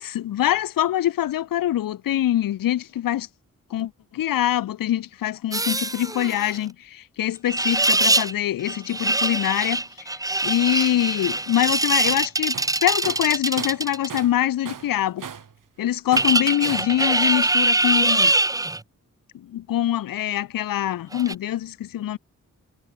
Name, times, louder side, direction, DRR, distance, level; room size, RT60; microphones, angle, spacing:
voice 1, 0.0-3.3 3.7-10.1 10.4-15.3 15.8-18.3 19.3-22.2, left 12 dB, 80° left, 0.7 m, -24 dB
sound 1, 5.5-6.6 7.5-8.3 8.6-14.2 16.1-18.8 21.1-21.3, right 2 dB, 10° right, 0.7 m, -23 dB
Tools, 12.1-12.3 12.5-14.4 14.7-15.6 16.1-17.0, right 7 dB, 70° right, 3.2 m, -38 dB
cardioid pair, 60°, 33 cm